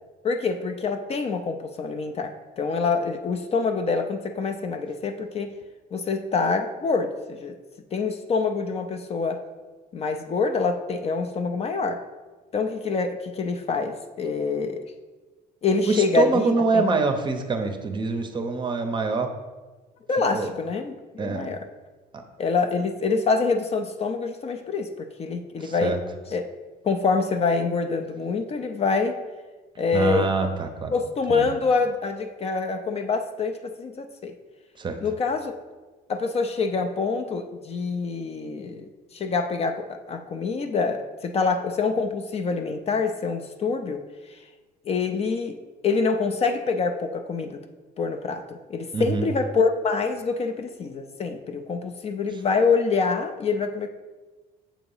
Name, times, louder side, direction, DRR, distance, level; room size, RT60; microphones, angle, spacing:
voice 1, 0.2-5.5 5.9-7.6 7.9-9.4 9.9-12.0 12.5-14.8 15.6-16.8 20.1-21.7 22.4-26.0 26.3-26.5 26.8-29.2 29.8-30.3 30.9-34.4 35.0-35.5 36.1-44.0 44.3-44.4 44.9-45.6 45.8-47.6 48.0-53.9, left 4 dB, 35° left, 6 dB, 0.4 m, -26 dB
voice 2, 15.9-19.3 20.3-20.5 21.2-21.5 25.6-26.0 29.9-31.0 31.3-31.5 34.8-35.0 48.9-49.3, right 4 dB, 30° right, 6 dB, 0.6 m, -24 dB
7.1 x 2.9 x 5.4 m, 1.3 s
cardioid pair, 110°, 17 cm